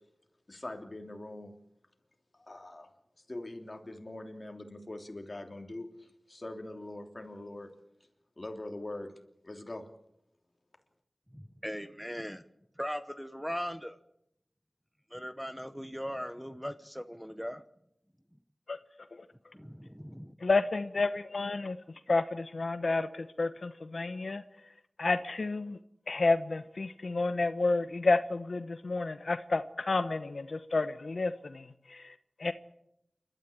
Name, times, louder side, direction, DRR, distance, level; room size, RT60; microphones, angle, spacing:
voice 1, 0.5-1.5 2.3-2.9 3.3-7.7 8.4-9.1 9.4-9.9, left 1 dB, 40° left, 4 dB, 3.2 m, -42 dB
voice 2, 11.3-12.4 12.8-14.0 15.1-17.6 19.5-20.3, equal, ahead, 10 dB, 1.0 m, -39 dB
voice 3, 20.4-21.8 22.1-24.4 25.0-25.8 26.1-32.1 32.4-32.5, left 3 dB, 70° left, 10 dB, 0.9 m, -30 dB
28.5 x 13.0 x 8.6 m, 0.79 s
wide cardioid pair, 75°, 0 cm